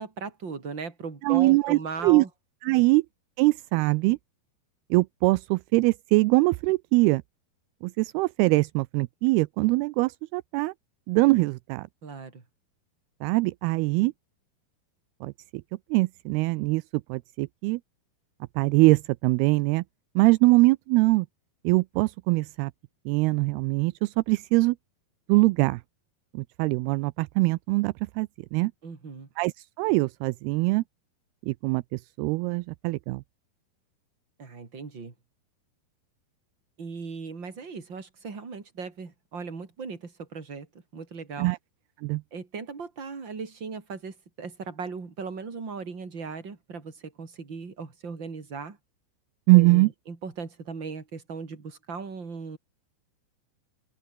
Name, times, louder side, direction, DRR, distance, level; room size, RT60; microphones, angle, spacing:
voice 1, 0.0-2.3 2.7-2.8 12.0-12.4 28.8-29.3 34.4-35.1 36.8-40.7 40.9-41.5 42.3-48.8 49.5-52.6, right 5 dB, 30° right, 4.1 m, -38 dB
voice 2, 1.2-2.2 2.6-3.0 3.4-4.2 4.9-7.2 7.8-10.7 11.1-11.9 13.2-14.1 15.2-15.3 15.9-16.8 17.1-17.8 18.6-19.8 20.2-21.3 21.6-22.7 23.1-24.8 25.3-25.8 26.3-28.7 29.4-29.5 29.8-30.8 31.5-33.2 41.4-41.6 42.0-42.2 49.5-49.9, right 23 dB, 85° right, 2.5 m, -22 dB
open air
omnidirectional pair, 4.6 m